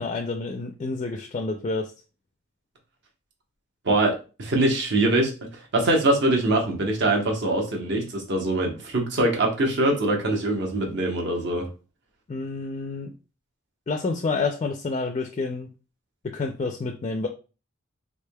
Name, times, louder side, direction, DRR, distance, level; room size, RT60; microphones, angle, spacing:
voice 1, 0.0-1.9 12.3-13.1 13.9-15.7 16.2-17.3, left 3 dB, 30° left, 5 dB, 0.3 m, -29 dB
voice 2, 3.8-11.6, right 2 dB, 60° right, 1 dB, 0.9 m, -23 dB
3.6 x 3.3 x 2.2 m, 0.33 s
head